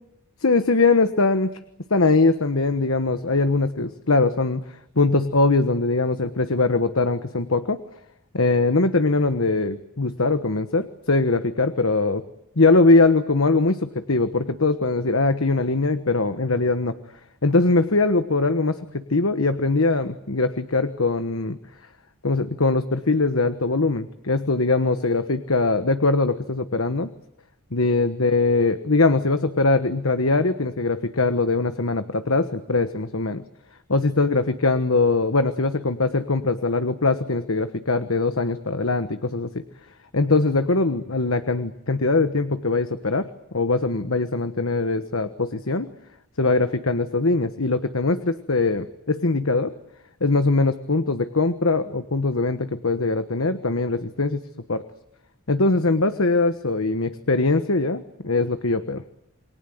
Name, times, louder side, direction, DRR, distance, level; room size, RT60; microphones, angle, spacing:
voice 1, 0.4-1.5 1.9-4.6 5.0-7.8 8.3-12.2 12.6-17.0 17.4-21.6 22.2-27.1 27.7-33.4 33.9-39.6 40.1-43.3 43.5-45.9 46.4-49.7 50.2-54.4 54.7-54.8 55.5-59.0, left 3 dB, 65° left, 10 dB, 1.3 m, -21 dB
29.0 x 23.0 x 8.0 m, 0.81 s
head